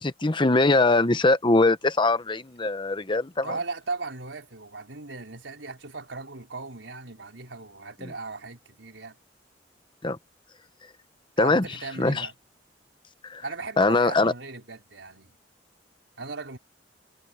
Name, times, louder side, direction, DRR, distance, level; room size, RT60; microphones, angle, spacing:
voice 1, 0.0-3.5 10.0-10.2 11.4-11.7 12.0-12.3 13.2-13.4 13.8-14.3, left 2 dB, 25° left, 0.9 m, -22 dB
voice 2, 3.4-9.2 11.4-12.3 13.4-15.4 16.2-16.6, right 3 dB, 90° right, 4.4 m, -37 dB
head